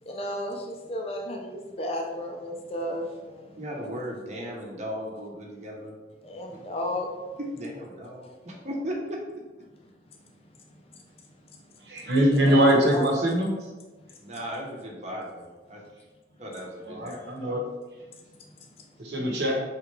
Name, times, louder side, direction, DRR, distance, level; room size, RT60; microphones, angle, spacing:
voice 1, 0.0-3.6 6.2-7.4 10.1-10.2 10.6-12.1 12.5-12.6 12.9-13.1 14.0-14.1 18.1-18.3 18.6-18.9, left 1 dB, 35° left, 0 dB, 0.5 m, -35 dB
voice 2, 3.5-6.0 6.5-6.6 7.4-9.2 14.2-15.8 16.4-17.2 17.4-17.5, equal, 40° right, -2 dB, 0.9 m, -36 dB
voice 3, 11.9-13.5 16.9-17.6 19.0-19.5, right 1 dB, 65° right, -1 dB, 1.0 m, -22 dB
4.4 x 3.5 x 3.3 m, 1.2 s
head